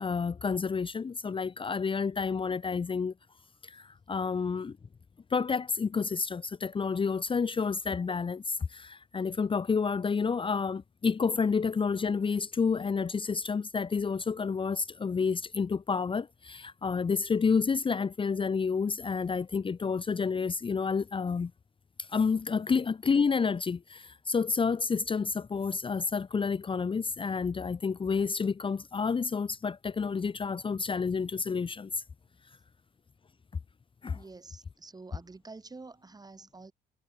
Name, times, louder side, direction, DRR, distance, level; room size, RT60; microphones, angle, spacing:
voice 1, 0.0-3.1 3.6-4.8 5.3-21.5 22.0-32.0 34.0-34.2, left 5 dB, 30° left, 1.1 m, -29 dB
voice 2, 34.1-36.7, right 3 dB, 20° right, 6.2 m, -48 dB
cardioid pair, 100°, 19 cm